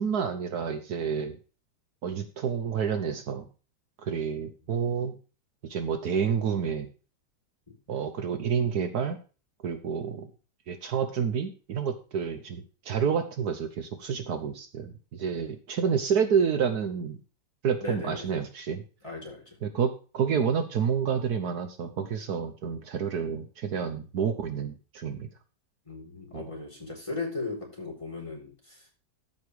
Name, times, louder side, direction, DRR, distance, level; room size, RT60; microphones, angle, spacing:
voice 1, 0.0-1.4 2.0-3.5 4.0-5.1 5.6-6.9 7.9-9.2 9.6-10.3 10.7-17.2 17.6-18.8 19.6-25.3 26.3-26.5, right 7 dB, 65° right, 8 dB, 1.5 m, -29 dB
voice 2, 17.8-18.3 19.0-19.4 25.9-28.9, left 3 dB, 15° left, -2 dB, 4.0 m, -37 dB
13.5 x 5.5 x 4.7 m, 0.36 s
omnidirectional pair, 1.8 m